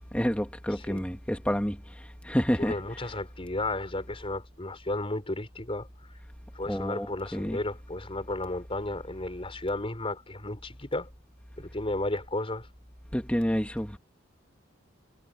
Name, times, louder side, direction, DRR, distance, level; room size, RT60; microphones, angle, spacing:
voice 1, 0.1-1.8 2.2-2.7 6.7-7.6 13.1-14.0, equal, 5° left, 2.4 m, -28 dB
voice 2, 0.8-1.1 2.6-5.9 6.5-11.1 11.6-12.7, left 2 dB, 30° left, 4.2 m, -33 dB
head